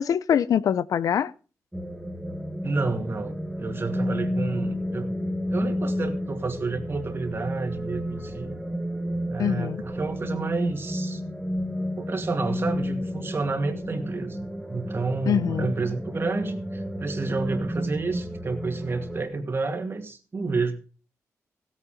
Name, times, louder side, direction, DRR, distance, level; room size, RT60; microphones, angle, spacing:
voice 1, 0.0-1.3 9.4-9.8 15.3-15.7, left 8 dB, 80° left, 0.6 m, -23 dB
sound 1, 1.7-19.2, equal, 5° right, 1.6 m, -31 dB
voice 2, 2.6-5.1 5.5-8.5 9.3-11.2 12.0-20.8, right 3 dB, 40° right, 2.3 m, -30 dB
16.5 x 8.6 x 5.0 m
cardioid pair, 100°, 6 cm